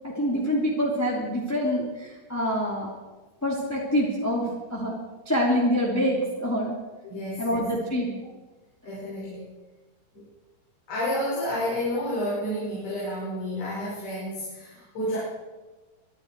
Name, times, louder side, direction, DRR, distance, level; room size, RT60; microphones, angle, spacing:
voice 1, 0.0-2.9 3.4-4.9 5.3-6.7 7.4-8.1, equal, 5° left, -4 dB, 2.2 m, -26 dB
voice 2, 7.0-7.7 8.8-9.5 10.1-10.3 10.9-15.2, left 1 dB, 85° left, -9 dB, 8.0 m, -30 dB
25.5 x 11.5 x 4.7 m, 1.2 s
omnidirectional pair, 4.5 m